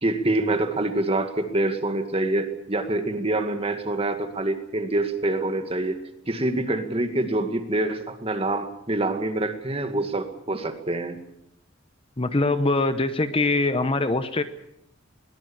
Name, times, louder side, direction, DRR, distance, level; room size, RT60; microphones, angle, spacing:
voice 1, 0.0-6.0 6.3-11.2, right 2 dB, 30° right, 7 dB, 2.1 m, -26 dB
voice 2, 12.2-14.4, left 2 dB, 30° left, 11 dB, 0.9 m, -23 dB
22.0 x 19.0 x 7.2 m, 0.78 s
head